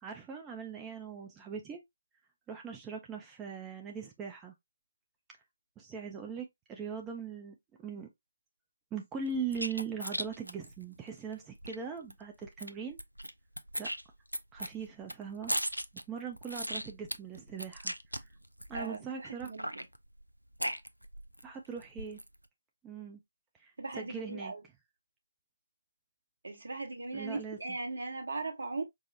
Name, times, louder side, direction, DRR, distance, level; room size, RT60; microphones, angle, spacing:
voice 1, 0.0-1.8 2.5-4.5 5.8-7.6 7.8-8.1 8.9-13.0 13.8-13.9 14.5-15.5 16.1-18.3 18.7-19.5 21.4-22.2 22.8-23.2 23.6-24.5 27.1-27.6, right 6 dB, 10° right, 0.4 m, -40 dB
sound 1, 9.3-11.8 12.1-12.2 12.4-13.3 13.6-19.0 19.4-21.4 21.8-22.4, equal, 85° right, 0.4 m, -37 dB
voice 2, 18.7-19.9 23.8-24.6 26.4-28.8, right 3 dB, 60° right, 1.1 m, -39 dB
4.7 x 2.0 x 2.7 m
figure-of-eight pair, 145°, 0 cm